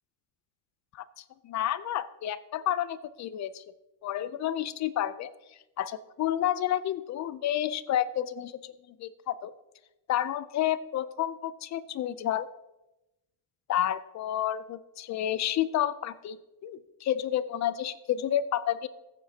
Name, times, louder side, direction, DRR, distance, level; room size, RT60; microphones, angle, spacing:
voice 1, 0.9-3.6 4.0-5.3 5.8-8.7 9.0-9.5 10.1-12.5 13.7-16.4 16.6-18.9, left 11 dB, 40° left, 16 dB, 0.4 m, -30 dB
15.0 x 8.9 x 2.8 m, 0.96 s
cardioid pair, 135°, 48 cm